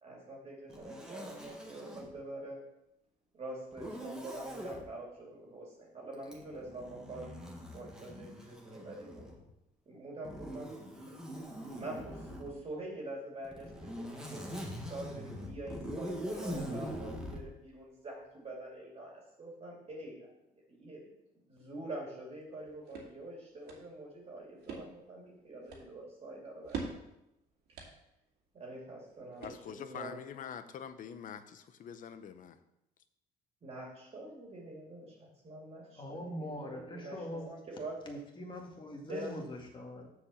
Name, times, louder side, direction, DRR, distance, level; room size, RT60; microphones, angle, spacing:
voice 1, 0.0-2.6 3.3-9.4 9.9-10.8 11.7-20.3 20.7-21.1 21.5-27.0 28.5-30.2 33.6-38.0 39.1-39.4, right 1 dB, 35° right, -3 dB, 2.6 m, -45 dB
Zipper (clothing), 0.7-2.1 3.7-4.8 6.2-9.5 10.2-12.5 13.4-17.4, equal, 5° right, 1.6 m, -43 dB
sound 1, 22.4-30.0, right 5 dB, 75° right, 2.3 m, -48 dB
voice 2, 29.4-32.5, left 8 dB, 50° left, 11 dB, 0.8 m, -45 dB
voice 3, 36.0-37.5 38.1-40.1, left 1 dB, 30° left, 0 dB, 2.0 m, -42 dB
6.9 x 4.9 x 7.0 m, 0.85 s
cardioid pair, 110°, 17 cm